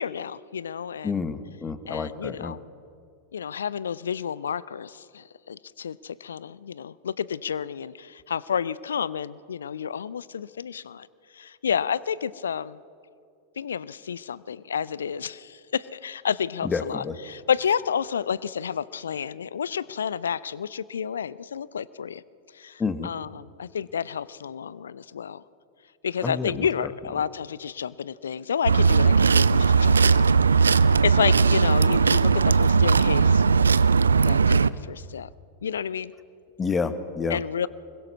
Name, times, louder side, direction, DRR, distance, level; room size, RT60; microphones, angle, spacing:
voice 1, 0.0-1.2 1.9-2.6 3.3-11.1 11.3-12.8 13.6-22.2 22.5-25.4 26.0-33.4 34.2-35.3 35.6-36.1 37.3-37.7, left 7 dB, 70° left, 20 dB, 0.5 m, -30 dB
voice 2, 1.0-2.6 16.6-17.2 22.8-23.1 26.2-26.7 36.6-37.7, left 4 dB, 15° left, 12 dB, 1.3 m, -29 dB
sound 1, 28.6-34.7, right 5 dB, 75° right, 0.4 m, -18 dB
24.5 x 21.5 x 6.1 m, 2.4 s
figure-of-eight pair, 90°, 0 cm